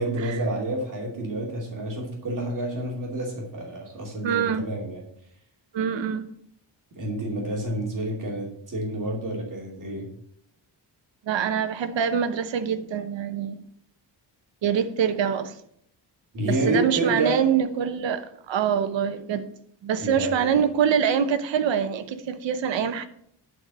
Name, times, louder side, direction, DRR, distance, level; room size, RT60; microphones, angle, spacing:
voice 1, 0.0-5.0 7.0-10.1 16.3-17.4 20.0-20.5, right 1 dB, 45° right, 2.7 m, -29 dB
voice 2, 4.2-4.6 5.7-6.3 11.3-13.5 14.6-15.5 16.5-19.5 19.8-23.1, right 7 dB, 85° right, 1.1 m, -25 dB
11.5 x 4.6 x 6.7 m
wide cardioid pair, 140°, 44 cm